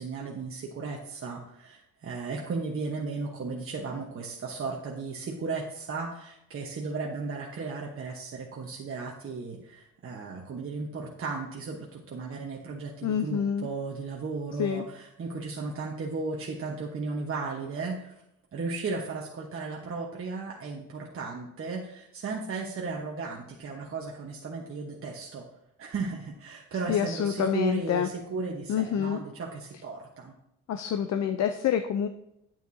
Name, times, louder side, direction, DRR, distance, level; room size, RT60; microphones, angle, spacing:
voice 1, 0.0-18.1 18.5-25.5 25.8-30.3, right 4 dB, 45° right, -2 dB, 1.2 m, -35 dB
voice 2, 13.0-13.7 14.6-14.8 26.9-28.1 28.7-29.2 30.7-32.1, left 8 dB, 60° left, 8 dB, 0.6 m, -27 dB
9.1 x 9.0 x 2.7 m, 0.82 s
cardioid pair, 90°, 30 cm